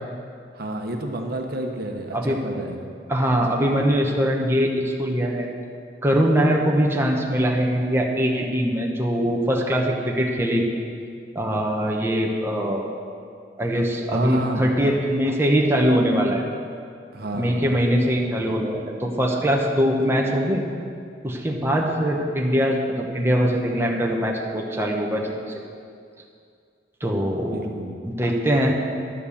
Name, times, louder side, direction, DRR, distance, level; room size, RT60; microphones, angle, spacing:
voice 1, 0.5-2.8 14.1-14.6 17.1-17.7 27.5-28.0, right 1 dB, 60° right, 3 dB, 1.1 m, -30 dB
voice 2, 2.1-2.4 3.1-5.5 6.0-10.7 11.3-12.8 13.6-16.4 17.3-20.6 21.2-25.4 27.0-27.6 28.0-28.7, equal, 15° right, -1 dB, 1.1 m, -22 dB
11.5 x 7.7 x 7.1 m, 2.3 s
head